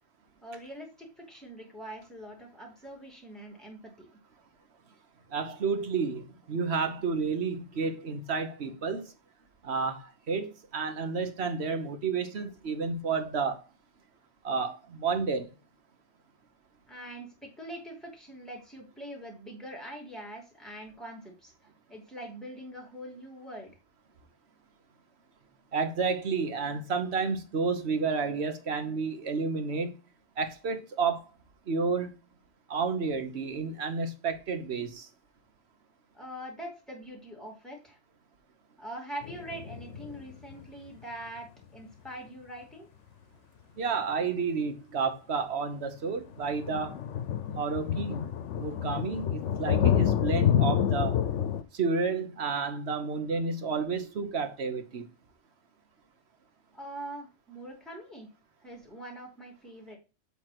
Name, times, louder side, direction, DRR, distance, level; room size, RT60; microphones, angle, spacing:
voice 1, 0.4-4.2 16.9-21.5 21.9-23.7 36.1-38.0 38.8-42.9 56.7-58.3 58.6-60.0, right 1 dB, ahead, 2.7 m, -43 dB
voice 2, 5.3-9.1 9.6-13.6 14.4-15.5 25.7-29.9 30.4-31.3 31.7-32.1 32.7-35.1 43.8-47.0 47.6-48.2 48.6-51.1 51.7-55.1, right 5 dB, 65° right, 1.3 m, -31 dB
sound 1, 39.2-40.5 46.3-51.6, left 9 dB, 80° left, 1.0 m, -28 dB
7.7 x 3.5 x 5.9 m
omnidirectional pair, 1.2 m